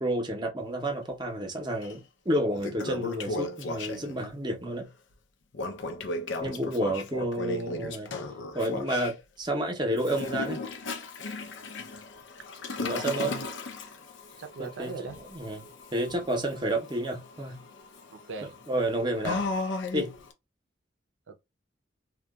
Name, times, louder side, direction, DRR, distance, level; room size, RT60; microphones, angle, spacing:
voice 1, 0.0-4.9 6.4-8.1 8.5-10.6 12.8-13.3 14.6-17.6 18.7-19.4 19.9-20.1, right 1 dB, 25° right, 0.6 m, -30 dB
Toilet flush, 1.8-1.9 2.4-4.3 5.5-9.1 10.0-20.3, left 3 dB, 75° left, 0.5 m, -36 dB
voice 2, 12.8-13.5 14.4-15.2 18.1-18.6 21.3-21.4, right 4 dB, 80° right, 0.5 m, -40 dB
2.7 x 2.2 x 2.3 m
head